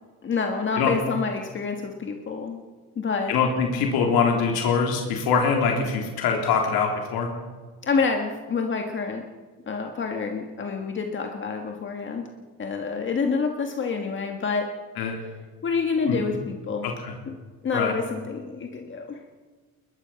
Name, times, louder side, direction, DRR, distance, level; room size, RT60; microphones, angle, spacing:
voice 1, 0.2-2.6 2.9-3.4 7.8-9.2 9.7-12.3 12.6-14.7 15.6-16.9 17.3-17.4 17.6-19.2, left 5 dB, 30° left, 3 dB, 1.6 m, -27 dB
voice 2, 3.3-7.3 15.0-15.2 16.1-16.2 17.0-17.1 17.7-17.9, left 5 dB, 90° left, 1 dB, 3.6 m, -23 dB
21.5 x 21.0 x 5.8 m, 1.4 s
cardioid pair, 155°, 36 cm